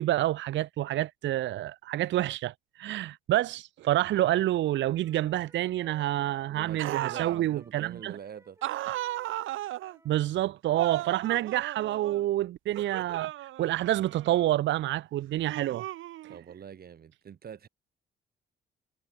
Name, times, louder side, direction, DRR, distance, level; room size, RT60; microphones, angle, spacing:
voice 1, 0.0-8.1 10.0-13.3 13.6-15.8, right 14 dB, 70° right, 0.6 m, -28 dB
Wind instrument woodwind instrument, 4.6-10.2, right 2 dB, 15° right, 5.1 m, -60 dB
voice 2, 6.5-8.6 16.3-17.7, right 8 dB, 50° right, 2.0 m, -44 dB
Groans and Screams, 6.8-7.4 8.6-10.0 10.8-12.3 12.7-14.5 15.4-16.5, right 15 dB, 85° right, 1.7 m, -36 dB
cardioid pair, 90°, 20 cm